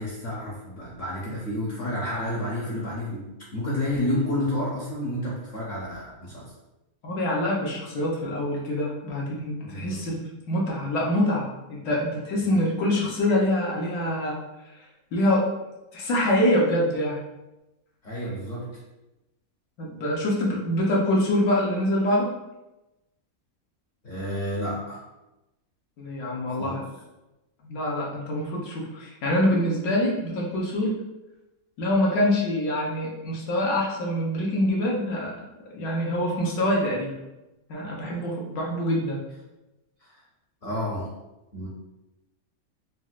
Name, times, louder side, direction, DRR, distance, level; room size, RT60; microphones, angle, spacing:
voice 1, 0.0-6.5 9.6-10.0 18.0-18.8 24.0-25.0 26.5-26.8 40.0-40.2 40.6-41.1 41.5-41.7, left 1 dB, 55° left, -5 dB, 0.8 m, -30 dB
voice 2, 7.0-10.2 10.5-14.4 15.1-15.4 15.9-17.2 19.8-22.3 26.0-26.8 27.6-30.9 31.8-35.3 35.7-37.2 37.7-39.2, left 1 dB, 80° left, -3 dB, 1.2 m, -25 dB
4.0 x 2.0 x 2.4 m, 0.98 s
omnidirectional pair, 1.5 m